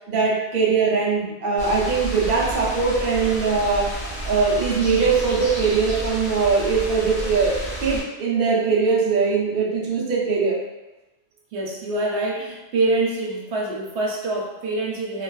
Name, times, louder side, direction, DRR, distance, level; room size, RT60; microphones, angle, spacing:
voice 1, 0.1-3.9 4.2-10.6, right 4 dB, 55° right, -4 dB, 0.7 m, -21 dB
sound 1, 1.6-8.0, right 1 dB, 45° left, 1.4 m, -31 dB
voice 2, 11.5-15.2, right 2 dB, 85° right, -3 dB, 1.0 m, -25 dB
3.1 x 2.4 x 2.3 m, 1.0 s
omnidirectional pair, 1.1 m